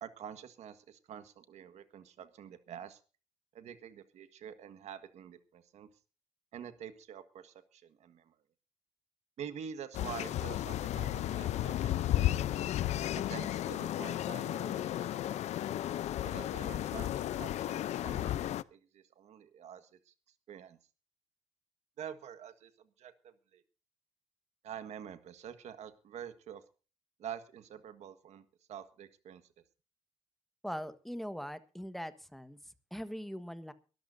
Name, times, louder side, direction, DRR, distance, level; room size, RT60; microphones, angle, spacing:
voice 1, 0.0-3.0 3.5-5.9 6.5-8.4 9.4-11.9 13.1-15.6 16.2-20.1 20.5-20.8 22.0-23.6 24.6-26.6 27.2-29.4, right 8 dB, 75° right, 10 dB, 1.6 m, -47 dB
sound 1, 9.9-18.6, left 12 dB, 75° left, 0.6 m, -33 dB
voice 2, 30.6-32.6 32.9-33.7, equal, ahead, 11 dB, 1.3 m, -41 dB
23.0 x 13.0 x 2.7 m, 0.35 s
cardioid pair, 110°, 12 cm